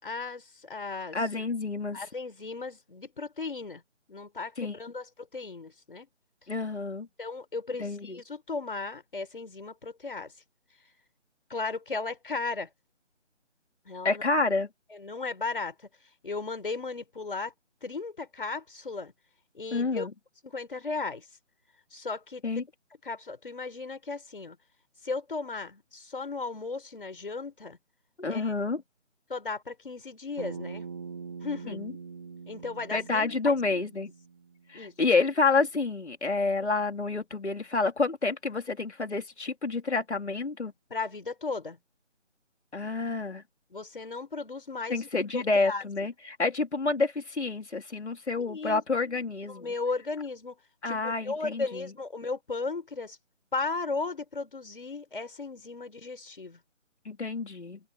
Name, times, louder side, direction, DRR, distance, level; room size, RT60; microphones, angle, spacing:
voice 1, 0.0-1.2 1.9-3.8 4.1-6.1 7.2-10.3 11.5-12.7 13.9-14.2 14.9-15.7 16.2-17.5 17.8-19.1 19.5-20.1 20.4-21.3 21.9-22.4 23.0-24.6 25.0-27.8 28.3-28.5 29.3-30.9 31.4-31.8 32.5-33.6 34.7-34.9 40.9-41.8 43.7-45.0 45.3-45.8 48.4-48.8 49.5-50.6 50.9-53.2 53.5-56.6, left 3 dB, 45° left, 5.9 m, -35 dB
voice 2, 1.1-2.0 4.6-4.8 6.5-7.1 7.8-8.2 14.0-14.7 19.7-20.1 22.4-22.6 28.2-28.8 31.7-31.9 32.9-34.1 34.7-40.7 42.7-43.4 44.9-49.7 50.8-51.9 57.1-57.8, left 3 dB, 60° left, 4.3 m, -29 dB
Bass guitar, 30.4-34.7, right 5 dB, 20° right, 2.6 m, -43 dB
open air
figure-of-eight pair, 180°, 37 cm